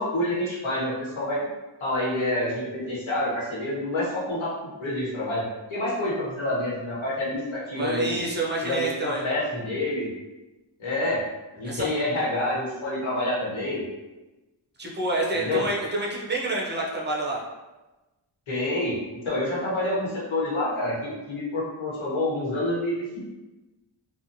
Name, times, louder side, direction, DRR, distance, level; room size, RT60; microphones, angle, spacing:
voice 1, 0.0-1.4 1.8-4.5 4.8-5.4 5.7-8.1 8.6-10.1 10.8-11.2 11.5-13.8 15.3-15.6 18.5-19.0 19.2-23.3, left 1 dB, 75° left, -7 dB, 1.2 m, -27 dB
voice 2, 7.7-9.2 11.6-11.8 14.8-17.4, right 2 dB, 25° right, -3 dB, 0.4 m, -28 dB
2.8 x 2.3 x 2.6 m, 1.1 s
wide cardioid pair, 180°, 47 cm